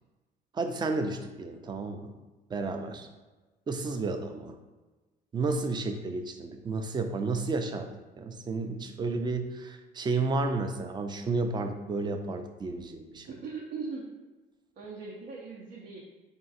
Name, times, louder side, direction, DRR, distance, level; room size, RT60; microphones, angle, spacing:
voice 1, 0.5-2.1 2.5-3.1 3.7-4.6 5.3-7.9 8.2-13.3, right 3 dB, 25° right, 5 dB, 0.4 m, -32 dB
voice 2, 13.3-14.1 14.8-16.0, right 4 dB, 70° right, -4 dB, 0.7 m, -39 dB
3.8 x 2.5 x 3.9 m, 1.2 s
cardioid pair, 110°, 17 cm